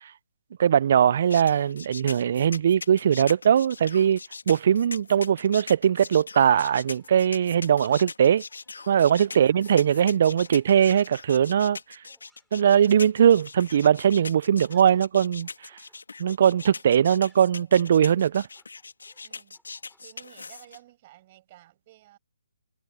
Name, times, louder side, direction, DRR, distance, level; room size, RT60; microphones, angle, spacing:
voice 1, 0.6-4.2 4.5-8.4 8.9-12.0 12.5-15.5 16.2-18.4, right 9 dB, 50° right, 0.4 m, -20 dB
sound 1, 1.3-20.8, left 4 dB, 80° left, 2.6 m, -41 dB
sound 2, 5.7-15.2 15.4-20.5, right 1 dB, ahead, 7.5 m, -66 dB
voice 2, 9.2-9.7 16.6-16.8 17.1-17.3 17.6-18.0 19.2-19.6 20.0-22.2, right 16 dB, 35° right, 5.8 m, -54 dB
hypercardioid pair, 150°, 0 cm